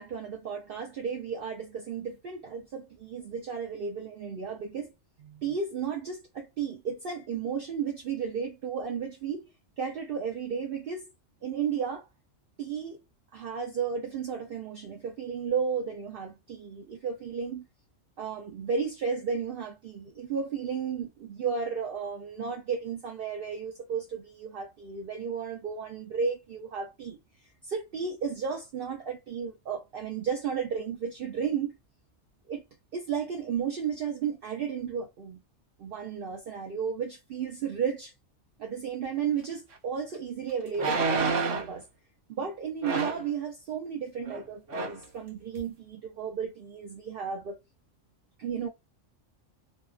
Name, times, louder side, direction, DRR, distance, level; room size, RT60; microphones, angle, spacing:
voice 1, 0.0-4.9 5.2-9.5 9.8-11.0 11.4-12.1 12.6-13.0 13.3-17.7 18.2-27.2 27.6-31.8 32.5-32.6 32.9-35.4 35.8-38.1 38.6-41.9 42.3-47.6 48.4-48.7, right 6 dB, 60° right, 0.7 m, -33 dB
sound 1, 39.7-39.8 40.7-41.8 42.8-43.3 44.3-44.4 44.7-45.0 45.6-45.7, right 3 dB, 85° right, 1.1 m, -29 dB
2.6 x 2.2 x 2.3 m
omnidirectional pair, 1.2 m